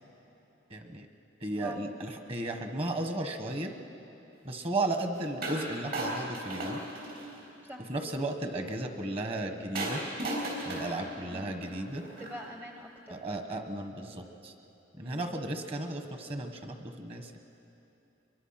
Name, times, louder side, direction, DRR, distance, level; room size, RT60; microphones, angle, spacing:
voice 1, 0.7-1.1 1.4-3.7 4.4-6.8 7.9-10.0 10.6-12.0 13.1-14.5 15.0-17.4, right 2 dB, 30° right, 6 dB, 1.4 m, -34 dB
sound 1, 5.4-5.7 5.9-7.5 9.8-12.5, right 1 dB, 55° right, 4.9 m, -36 dB
voice 2, 11.2-11.6 12.2-13.2 15.0-15.5, equal, 10° right, 2 dB, 0.8 m, -45 dB
23.5 x 22.5 x 5.9 m, 3.0 s
head